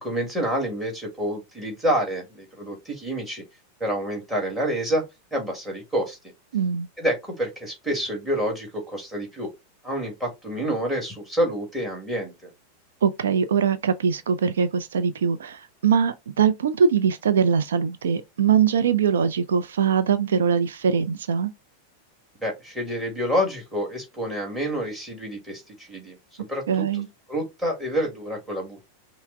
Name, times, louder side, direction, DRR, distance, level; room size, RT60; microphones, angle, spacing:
voice 1, 0.0-3.4 3.8-5.0 5.3-6.2 7.0-9.5 9.8-12.5 22.4-26.2 26.5-27.0 27.3-28.9, equal, 5° right, 1.9 m, -28 dB
voice 2, 6.5-6.9 13.0-21.5 26.7-27.1, right 7 dB, 65° right, 0.5 m, -22 dB
5.6 x 2.1 x 4.4 m
figure-of-eight pair, 90°, 0 cm